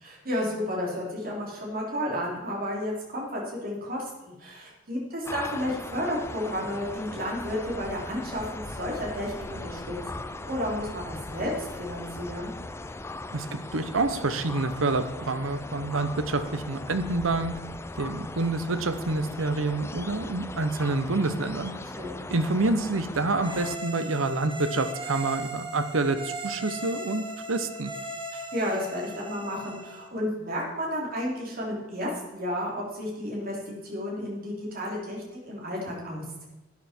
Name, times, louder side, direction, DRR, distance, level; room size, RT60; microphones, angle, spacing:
voice 1, 0.0-12.5 21.9-22.2 28.3-36.5, equal, 45° right, -2 dB, 3.3 m, -32 dB
sound 1, 5.3-23.8, left 2 dB, 15° left, 0.4 m, -39 dB
voice 2, 13.3-17.5 17.9-21.7 22.3-27.9, right 3 dB, 85° right, 10 dB, 0.9 m, -27 dB
sound 2, 23.4-30.1, right 1 dB, 25° right, 1.3 m, -38 dB
12.0 x 9.4 x 4.5 m, 0.99 s
head